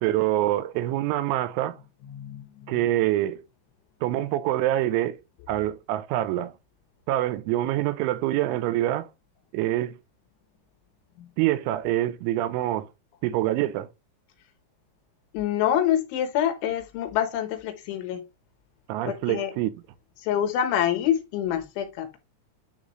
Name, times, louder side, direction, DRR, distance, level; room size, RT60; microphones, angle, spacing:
voice 1, 0.0-1.8 2.7-3.4 4.0-5.2 5.5-6.5 7.1-9.1 9.5-10.0 11.4-12.9 13.2-13.9 18.9-19.7, right 14 dB, 85° right, 3.2 m, -25 dB
voice 2, 2.1-2.7 11.2-11.3 15.3-18.2 19.1-19.5 20.2-22.2, left 10 dB, 80° left, 3.6 m, -26 dB
11.0 x 3.9 x 3.1 m
omnidirectional pair, 5.4 m